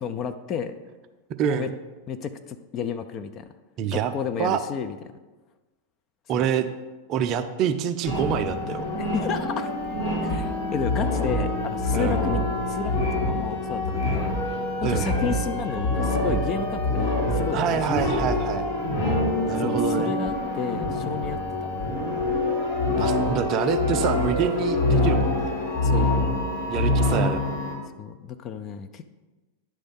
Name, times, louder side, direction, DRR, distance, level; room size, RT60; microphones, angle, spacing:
voice 1, 0.0-0.7 1.4-1.7 2.1-3.5 3.9-5.0 6.3-6.5 9.0-9.7 10.2-17.8 18.2-18.3 19.6-21.4 25.8-26.1 28.0-29.1, left 6 dB, 30° left, 8 dB, 0.5 m, -32 dB
voice 2, 1.4-1.8 3.8-4.1 4.4-4.6 6.3-6.7 7.1-8.9 11.9-12.3 14.8-15.1 17.5-18.7 19.5-20.1 23.0-25.5 26.7-27.6, right 9 dB, 35° right, 9 dB, 0.5 m, -26 dB
sound 1, 8.0-27.7, left 2 dB, 55° left, 2.1 m, -25 dB
10.0 x 3.5 x 5.4 m, 1.2 s
figure-of-eight pair, 90°, 0 cm